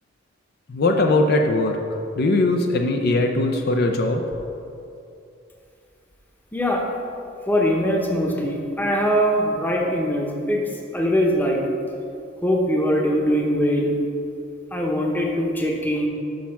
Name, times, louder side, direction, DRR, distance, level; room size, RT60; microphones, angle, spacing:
voice 1, 0.7-1.8 2.2-4.2, left 2 dB, 55° left, 3 dB, 0.5 m, -20 dB
voice 2, 6.5-6.8 7.5-10.6 10.9-11.6 12.4-13.9 14.7-16.1, equal, 10° left, -1 dB, 0.8 m, -21 dB
6.4 x 5.7 x 5.8 m, 2.7 s
head